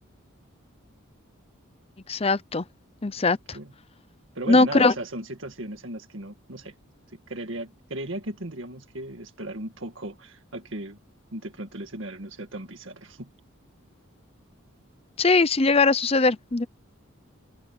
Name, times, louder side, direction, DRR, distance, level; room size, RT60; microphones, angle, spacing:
voice 1, 2.1-2.6 3.0-3.6 4.5-4.9 15.2-16.7, left 3 dB, 30° left, 0.7 m, -20 dB
voice 2, 4.3-6.8 7.1-11.0 11.3-13.3, right 1 dB, 65° right, 2.0 m, -36 dB
open air
head